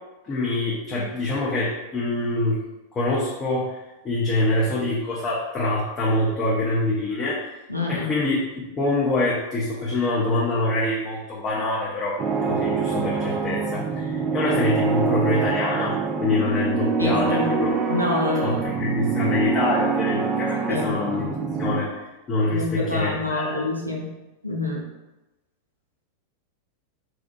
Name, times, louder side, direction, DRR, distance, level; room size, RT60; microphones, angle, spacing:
voice 1, 0.2-2.6 2.9-7.6 7.9-12.2 12.4-17.8 18.4-21.3 21.6-21.9 22.3-23.6, left 2 dB, 25° left, -6 dB, 0.5 m, -25 dB
voice 2, 7.7-8.1 17.0-17.5 17.9-18.7 20.7-21.0 22.5-24.1 24.4-24.8, left 3 dB, 90° right, -3 dB, 0.5 m, -26 dB
sound 1, 12.2-21.8, right 5 dB, 30° right, 0.3 m, -25 dB
2.7 x 2.1 x 2.5 m, 1.0 s
figure-of-eight pair, 90°, 0 cm